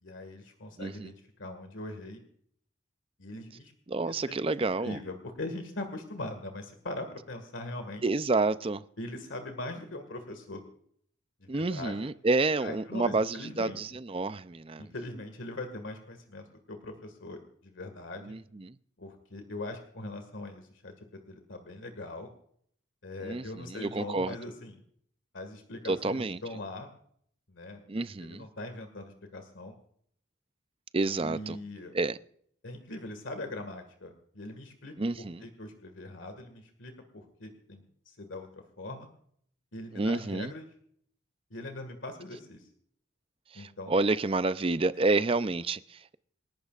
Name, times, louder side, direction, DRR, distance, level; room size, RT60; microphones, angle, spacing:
voice 1, 0.0-2.2 3.2-3.7 4.2-8.0 9.0-10.6 11.4-12.1 12.6-13.8 14.8-18.4 19.0-22.3 23.0-24.8 25.3-26.9 27.5-27.8 28.2-29.8 31.2-31.9 32.6-34.9 35.4-38.5 38.8-39.1 39.7-40.6 41.5-42.7 43.5-43.9, left 2 dB, 80° left, 6 dB, 1.9 m, -41 dB
voice 2, 0.8-1.1 3.9-5.0 8.0-8.8 11.5-14.9 18.2-18.8 23.2-24.4 25.8-26.4 27.9-28.5 30.9-31.6 31.9-32.2 35.0-35.4 39.9-40.5 43.5-46.2, right 3 dB, 30° right, 14 dB, 0.5 m, -29 dB
28.5 x 12.0 x 2.5 m, 0.64 s
head